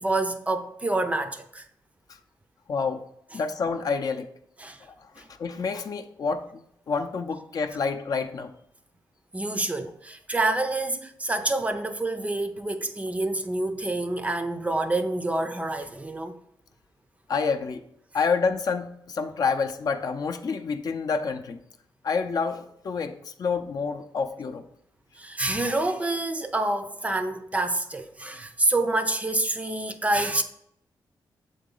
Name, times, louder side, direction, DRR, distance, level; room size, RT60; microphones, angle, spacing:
voice 1, 0.0-1.7 4.6-4.8 5.2-5.3 9.3-16.4 25.2-30.4, right 2 dB, 15° right, 0.5 m, -27 dB
voice 2, 2.7-3.0 3.3-4.3 4.8-8.5 17.3-17.8 18.1-21.6 22.0-24.6, left 5 dB, 50° left, 0.5 m, -28 dB
7.3 x 3.9 x 3.8 m
wide cardioid pair, 125°, 8 cm